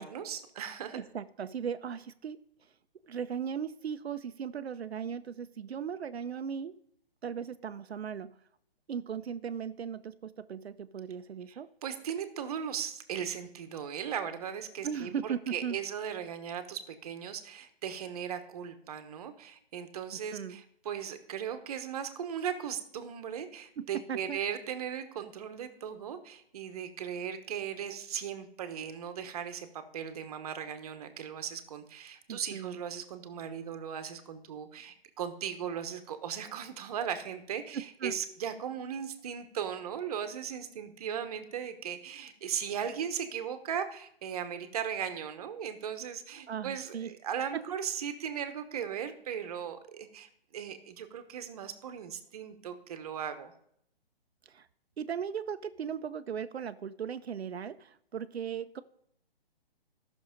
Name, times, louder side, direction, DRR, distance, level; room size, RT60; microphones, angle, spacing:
voice 1, 0.0-1.0 11.8-29.7 29.9-53.5, right 8 dB, 40° right, 9 dB, 1.1 m, -37 dB
voice 2, 0.9-2.4 3.1-6.7 7.2-8.3 8.9-11.7 14.8-15.8 20.1-20.6 23.8-24.4 32.3-32.8 37.7-38.1 46.5-47.1 47.5-47.6 54.5-54.7 55.0-58.8, right 7 dB, 85° right, 11 dB, 0.6 m, -37 dB
13.5 x 6.3 x 5.1 m, 0.71 s
hypercardioid pair, 150°, 31 cm